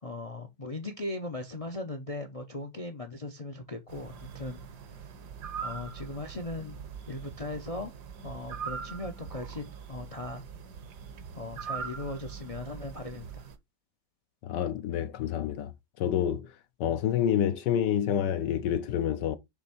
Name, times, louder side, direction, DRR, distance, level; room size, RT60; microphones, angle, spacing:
voice 1, 0.0-4.6 4.9-5.1 5.6-6.8 7.1-7.9 8.2-10.4 11.3-13.5, left 2 dB, 45° left, 0.4 m, -38 dB
sound 1, 3.9-13.6, right 7 dB, 70° right, 1.5 m, -42 dB
voice 2, 14.4-15.7 16.0-16.5 16.8-19.4, left 10 dB, 80° left, 1.3 m, -28 dB
6.8 x 3.5 x 4.3 m
omnidirectional pair, 1.9 m